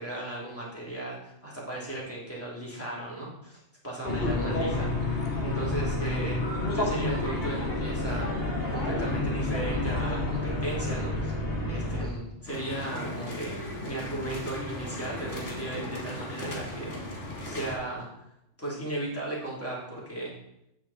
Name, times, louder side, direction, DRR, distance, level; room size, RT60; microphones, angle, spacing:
voice 1, 0.0-5.1 5.4-6.4 6.7-13.5 13.8-18.1 18.6-20.3, right 2 dB, 10° left, -5 dB, 3.2 m, -36 dB
sound 1, 4.0-12.1, left 2 dB, 50° left, 2.0 m, -29 dB
sound 2, 12.5-17.8, left 1 dB, 70° left, 2.5 m, -37 dB
9.6 x 7.7 x 4.3 m, 0.83 s
omnidirectional pair, 1.2 m